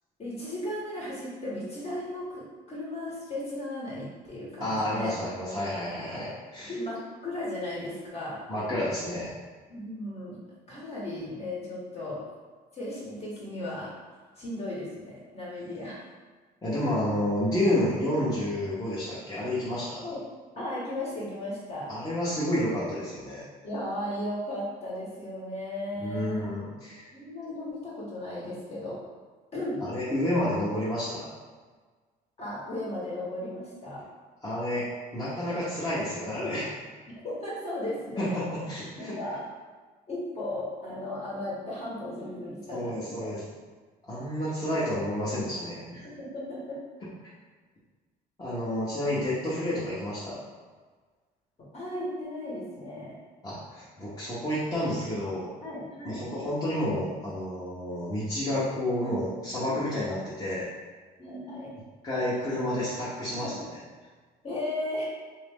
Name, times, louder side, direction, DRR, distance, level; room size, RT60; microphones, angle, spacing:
voice 1, 0.2-5.2 6.7-8.4 9.7-10.4 10.7-12.2 12.7-13.9 14.4-16.0 20.0-20.2 20.5-21.9 23.6-26.5 27.1-29.0 29.5-29.8 32.4-34.0 35.2-35.6 36.4-36.5 37.1-38.4 38.9-39.4 40.1-43.3 45.9-46.8 51.7-53.2 55.6-56.2 61.2-61.7 63.3-63.6 64.4-65.0, left 1 dB, 35° left, -6 dB, 1.3 m, -36 dB
voice 2, 4.6-6.7 8.5-9.3 16.6-20.1 21.9-23.4 26.0-27.1 29.8-31.3 34.4-34.9 35.1-36.6 38.2-39.1 42.7-43.4 44.1-45.9 48.4-50.4 53.4-55.5 56.0-60.7 62.0-63.5, left 1 dB, 20° left, -10 dB, 1.0 m, -30 dB
3.0 x 2.7 x 3.5 m, 1.4 s
cardioid pair, 110°, 17 cm